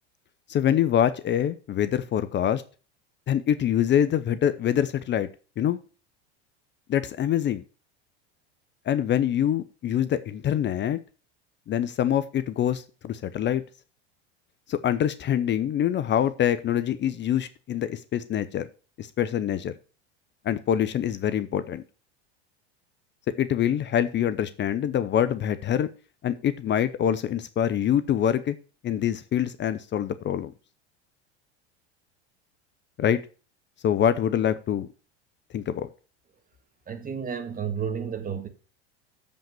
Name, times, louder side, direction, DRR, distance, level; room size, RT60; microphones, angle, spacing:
voice 1, 0.5-2.6 3.3-5.3 5.6-5.8 6.9-7.6 8.9-11.0 11.7-13.6 14.7-18.7 19.0-19.7 20.4-21.8 23.4-25.9 26.2-28.6 28.8-30.5 33.0-33.2 33.8-34.9 35.5-35.9, left 10 dB, 35° left, 0.7 m, -25 dB
voice 2, 36.9-38.5, right 7 dB, 25° right, 1.6 m, -31 dB
7.4 x 5.3 x 6.8 m
hypercardioid pair, 95°, 34 cm